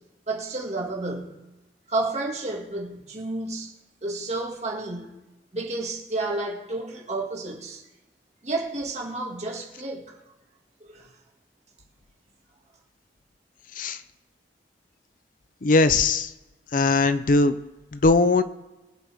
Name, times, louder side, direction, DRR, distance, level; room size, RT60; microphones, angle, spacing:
voice 1, 0.3-1.3 1.9-3.7 4.0-5.1 5.5-7.8 8.4-10.1 10.8-11.1, right 2 dB, 40° right, 2.1 m, -31 dB
voice 2, 15.6-16.3 16.7-17.6 17.9-18.4, left 3 dB, 50° left, 0.6 m, -20 dB
23.0 x 7.8 x 3.5 m
head